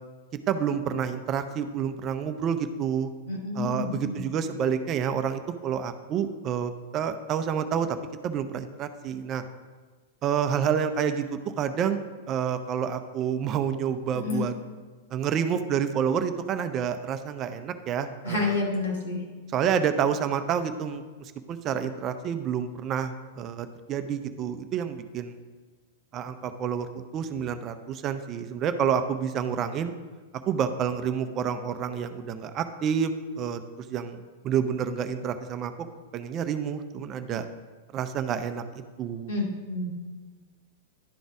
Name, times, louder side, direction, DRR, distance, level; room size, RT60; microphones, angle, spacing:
voice 1, 0.5-3.1 3.5-8.0 8.2-9.4 10.2-14.5 15.1-18.6 19.5-25.4 26.1-26.9 27.1-29.9 30.5-35.9 36.1-37.5 37.9-38.6 39.0-39.3, right 8 dB, 35° right, 9 dB, 0.5 m, -29 dB
voice 2, 3.3-4.2 14.2-14.5 18.2-19.2 39.3-39.9, left 3 dB, 70° left, -2 dB, 2.2 m, -29 dB
11.5 x 4.0 x 4.7 m, 1.4 s
hypercardioid pair, 105°, 0 cm